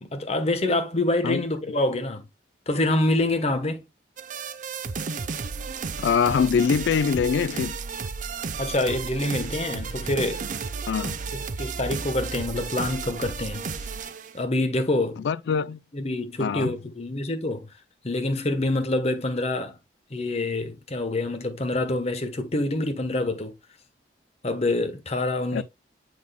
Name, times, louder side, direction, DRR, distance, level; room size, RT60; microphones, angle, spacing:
voice 1, 0.0-2.3 2.7-3.9 8.6-10.4 11.6-13.7 14.3-15.3 15.9-17.7 18.0-19.8 20.1-23.6 24.4-25.6, left 2 dB, 35° left, 1.0 m, -26 dB
sound 1, 4.2-14.4, right 5 dB, 45° right, 0.6 m, -33 dB
voice 2, 6.0-7.8 10.9-11.2 15.2-15.8 16.4-16.7 25.5-25.6, left 6 dB, 80° left, 0.3 m, -23 dB
7.2 x 6.2 x 2.2 m
head